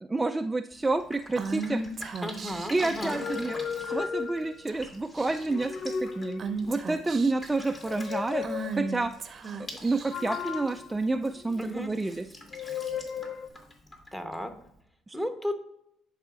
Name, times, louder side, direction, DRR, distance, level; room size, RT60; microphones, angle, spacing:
voice 1, 0.0-1.8 2.7-5.7 6.0-9.1 9.8-12.3 15.1-15.2, right 3 dB, 15° right, 6 dB, 0.3 m, -29 dB
Drip, 0.7-14.8, left 1 dB, 35° left, 2.1 m, -47 dB
Female speech woman speaking / Whispering, 1.4-2.8 3.8-4.3 4.7-4.8 5.1-5.6 6.4-7.5 8.4-10.4, right 3 dB, 45° right, 0.7 m, -36 dB
voice 2, 2.2-3.3 11.6-11.9 14.1-14.5 15.1-15.6, equal, 10° left, 7 dB, 1.0 m, -34 dB
sound 1, 3.0-4.8 5.4-6.7 7.7-9.0 10.1-11.9 12.5-13.5, left 6 dB, 50° left, 0.4 m, -36 dB
11.0 x 4.8 x 2.4 m, 0.77 s
supercardioid pair, 80°, 0 cm